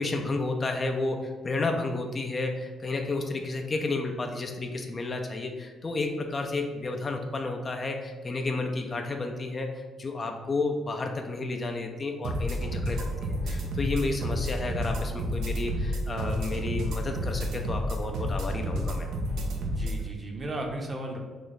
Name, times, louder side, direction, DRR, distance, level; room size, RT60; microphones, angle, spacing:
voice 1, 0.0-19.1, left 3 dB, 35° left, 4 dB, 0.4 m, -31 dB
sound 1, 12.2-20.0, equal, 80° right, 0.6 m, -30 dB
voice 2, 19.6-21.2, right 1 dB, 30° right, 1 dB, 0.7 m, -35 dB
3.2 x 2.9 x 4.0 m, 1.4 s
cardioid pair, 90°, 0 cm